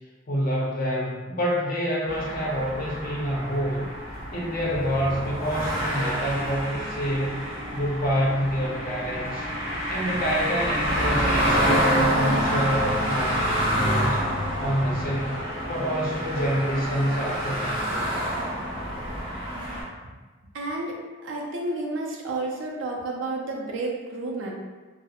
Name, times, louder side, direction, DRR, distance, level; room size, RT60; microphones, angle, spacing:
voice 1, 0.3-3.9 4.3-7.4 7.7-9.5 9.9-14.2 14.6-17.9, equal, 45° left, -4 dB, 0.6 m, -27 dB
sound 1, 2.1-19.8, equal, 30° right, 1.1 m, -27 dB
voice 2, 20.5-21.0 21.2-24.5, right 2 dB, 80° right, -1 dB, 0.5 m, -31 dB
2.3 x 2.0 x 2.8 m, 1.3 s
head